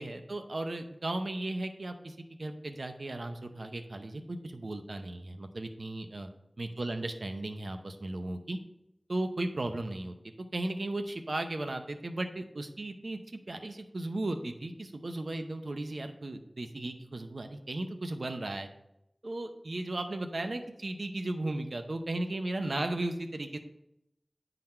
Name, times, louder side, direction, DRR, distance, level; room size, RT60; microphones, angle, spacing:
voice 1, 0.0-6.3 6.6-8.6 9.1-10.1 10.5-13.2 13.5-18.7 19.2-23.6, right 2 dB, 80° right, 6 dB, 0.6 m, -36 dB
9.1 x 3.9 x 4.3 m, 0.82 s
wide cardioid pair, 45°, 0 cm